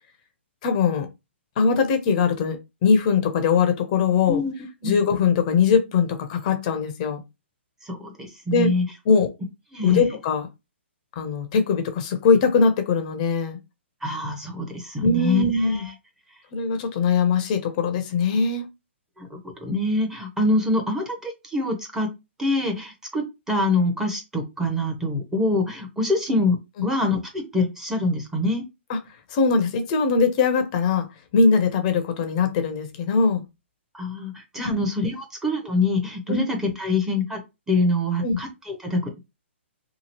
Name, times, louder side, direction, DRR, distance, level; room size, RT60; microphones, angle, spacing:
voice 1, 0.6-1.1 1.6-4.4 4.8-7.2 8.5-8.7 9.1-9.3 9.8-10.5 11.2-13.6 15.0-15.9 16.5-18.7 28.9-29.0 29.3-31.1 31.3-33.4 34.6-34.9 36.3-36.4 38.2-38.4, left 5 dB, 35° left, 0.6 m, -21 dB
voice 2, 7.8-8.8 9.7-10.0 14.0-15.9 19.2-22.1 22.4-28.6 33.9-37.4 37.7-39.2, left 2 dB, 5° right, 0.7 m, -25 dB
2.9 x 2.4 x 2.9 m
hypercardioid pair, 145°, 7 cm